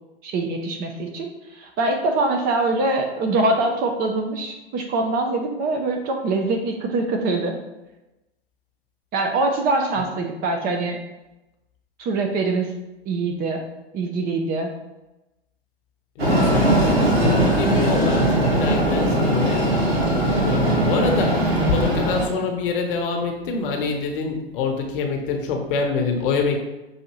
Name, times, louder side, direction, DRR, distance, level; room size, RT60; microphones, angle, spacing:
voice 1, 0.2-1.3 1.6-7.6 9.1-11.0 12.0-12.7 13.1-13.6 13.9-14.7, right 2 dB, 30° right, 4 dB, 0.6 m, -23 dB
voice 2, 16.2-19.8 20.2-26.6, left 4 dB, 60° left, 3 dB, 0.9 m, -25 dB
Train, 16.2-22.3, right 1 dB, 90° right, 1.3 m, -20 dB
6.3 x 2.6 x 3.0 m, 1.0 s
hypercardioid pair, 115°, 31 cm